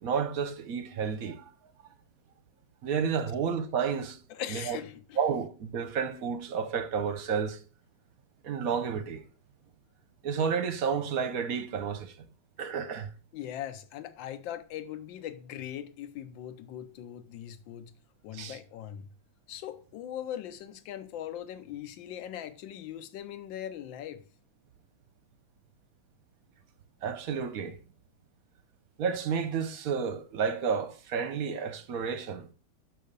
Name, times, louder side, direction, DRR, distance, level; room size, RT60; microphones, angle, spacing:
voice 1, 0.0-1.4 2.8-4.2 4.5-4.8 5.2-7.6 8.4-9.2 10.2-12.1 12.6-13.1 18.3-18.6 27.0-27.8 29.0-32.5, right 6 dB, 60° right, 1.0 m, -31 dB
voice 2, 4.3-5.2 13.3-17.9 18.2-19.1 19.5-24.2, left 10 dB, 75° left, 1.5 m, -40 dB
6.5 x 5.6 x 6.6 m
omnidirectional pair, 2.2 m